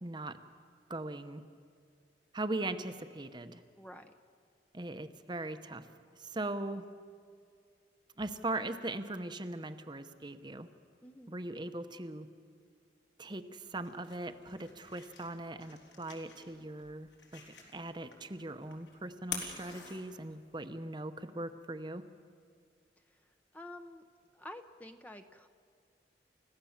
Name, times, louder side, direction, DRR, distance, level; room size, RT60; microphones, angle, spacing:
voice 1, 0.0-0.4 0.9-1.4 2.3-3.6 4.7-5.9 6.1-6.9 8.2-10.7 11.3-12.3 13.2-17.4 17.7-22.0, right 2 dB, 25° right, 9 dB, 0.8 m, -40 dB
voice 2, 3.8-4.1 11.0-11.3 23.0-24.0 24.3-25.5, left 1 dB, 10° left, 7 dB, 0.7 m, -50 dB
sound 1, 13.6-20.6, left 6 dB, 70° left, 4.1 m, -48 dB
29.5 x 15.5 x 7.3 m, 2.2 s
head